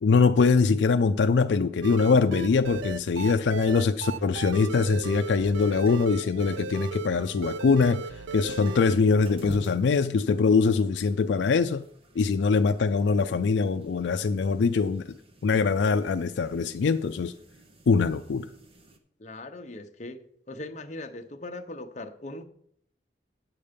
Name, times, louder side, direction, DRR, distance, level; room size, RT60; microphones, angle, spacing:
voice 1, 0.0-8.0 8.3-11.8 12.2-15.0 15.4-17.3 17.9-18.5, left 4 dB, 75° left, 9 dB, 0.4 m, -23 dB
sound 1, 1.8-9.0, right 4 dB, 75° right, 0.4 m, -36 dB
sound 2, 3.2-19.0, right 1 dB, 30° right, 1.0 m, -51 dB
voice 2, 19.2-20.2 20.5-22.4, left 2 dB, 40° left, 6 dB, 0.8 m, -39 dB
9.6 x 7.0 x 5.1 m, 0.67 s
head